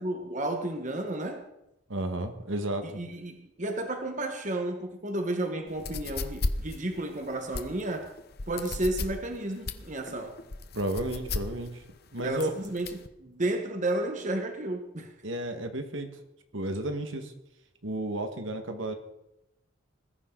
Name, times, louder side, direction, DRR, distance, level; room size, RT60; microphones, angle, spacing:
voice 1, 0.0-1.5 2.8-8.2 8.5-10.4 12.2-15.1, right 1 dB, 40° right, 1.5 m, -32 dB
voice 2, 1.9-2.9 10.7-11.8 12.1-12.5 15.2-16.1 16.5-17.3 17.8-18.9, right 1 dB, 70° right, 1.9 m, -32 dB
sound 1, 5.7-13.1, left 3 dB, 50° left, 1.0 m, -35 dB
21.0 x 14.5 x 4.1 m
head